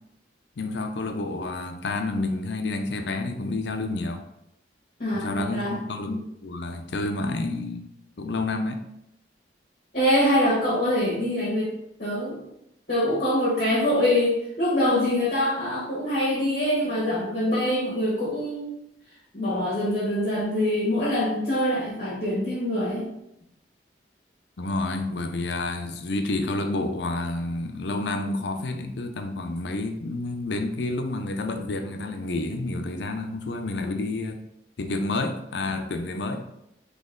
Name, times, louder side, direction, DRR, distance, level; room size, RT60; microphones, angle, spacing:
voice 1, 0.6-4.2 5.1-8.8 24.6-34.4 34.8-36.4, left 2 dB, 75° left, 6 dB, 0.5 m, -29 dB
voice 2, 5.0-5.8 6.1-6.2 9.9-11.7 12.0-12.4 12.9-18.7 19.3-23.1, left 1 dB, 45° left, -8 dB, 1.4 m, -24 dB
4.0 x 3.0 x 3.7 m, 0.81 s
head